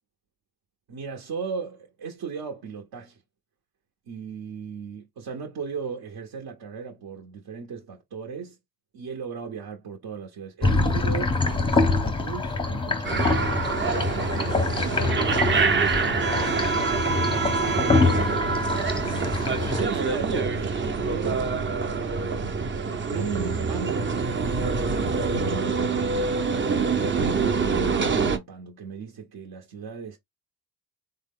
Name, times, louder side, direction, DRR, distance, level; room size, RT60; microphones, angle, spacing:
voice 1, 0.9-3.2 4.1-8.6 8.9-18.4 19.8-20.7 21.0-21.6 23.0-25.7 26.9-30.2, right 6 dB, 55° right, 0.9 m, -37 dB
sound 1, 10.6-19.8, left 3 dB, 10° left, 0.7 m, -25 dB
sound 2, 13.0-28.4, right 4 dB, 25° right, 0.6 m, -25 dB
3.5 x 2.1 x 3.5 m
supercardioid pair, 75°, 43 cm